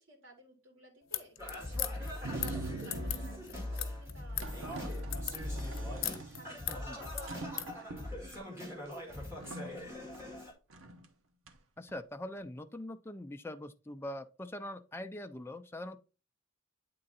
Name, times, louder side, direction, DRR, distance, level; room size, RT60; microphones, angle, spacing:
voice 1, 0.0-5.4 5.6-10.1, right 1 dB, 70° right, 3.0 m, -58 dB
sound 1, 1.0-7.7, left 12 dB, 80° left, 0.8 m, -40 dB
Singing, 1.4-10.5, left 1 dB, 15° right, 2.0 m, -41 dB
sound 2, 2.2-3.5 4.4-6.8 7.1-8.4 8.8-8.9 9.3-10.3 10.7-11.1 11.5-12.0, right 3 dB, 85° right, 1.0 m, -44 dB
voice 2, 6.7-7.0 11.8-16.0, left 1 dB, 10° left, 0.5 m, -43 dB
8.7 x 3.8 x 4.1 m
head